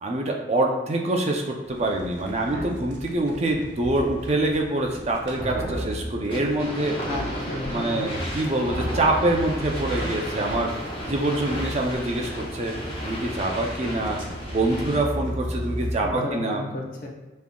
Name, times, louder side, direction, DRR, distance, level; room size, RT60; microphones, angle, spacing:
voice 1, 0.0-7.0 7.7-10.8 11.0-12.8 13.1-14.2 14.5-16.6, right 2 dB, 35° right, 2 dB, 0.5 m, -25 dB
sound 1, 1.7-16.0, equal, 70° right, 0.8 m, -35 dB
sound 2, 6.3-15.2, equal, 30° left, 1.1 m, -34 dB
voice 2, 7.1-8.0 16.0-17.1, left 2 dB, 50° left, 0 dB, 0.7 m, -33 dB
5.3 x 3.6 x 2.3 m, 1.1 s
head